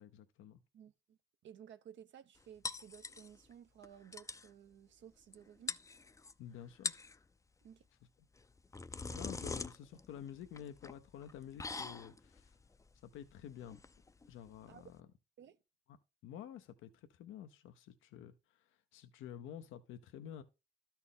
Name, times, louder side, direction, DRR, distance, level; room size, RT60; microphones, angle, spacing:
voice 1, 0.0-0.6 6.4-6.9 9.1-12.6 13.1-13.8 14.3-14.9 16.2-20.4, left 10 dB, 85° left, 0.7 m, -50 dB
voice 2, 0.7-5.8 7.6-7.9 9.1-9.2 14.7-14.9 15.4-15.6, right 9 dB, 70° right, 0.8 m, -56 dB
sound 1, 2.6-3.5 3.8-3.9 4.1-4.5 5.3-5.4 5.7-6.3 6.7-7.2 8.4-15.0, left 3 dB, 15° left, 0.5 m, -44 dB
12.5 x 4.4 x 3.6 m
cardioid pair, 90°, 20 cm